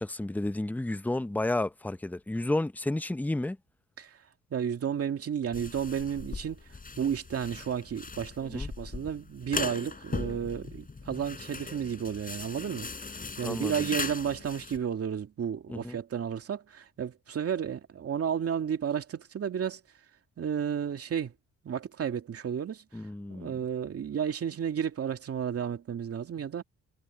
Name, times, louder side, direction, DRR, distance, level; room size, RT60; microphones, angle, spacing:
voice 1, 0.0-3.6 8.5-8.7 13.4-13.9 15.7-16.0 22.9-23.5, left 2 dB, 5° left, 0.8 m, -31 dB
voice 2, 4.5-6.6 7.0-19.8 20.4-21.3 21.6-22.8 23.3-26.6, right 8 dB, 50° right, 2.4 m, -32 dB
sound 1, 5.5-14.8, left 4 dB, 30° left, 5.4 m, -39 dB
cardioid pair, 90°, 30 cm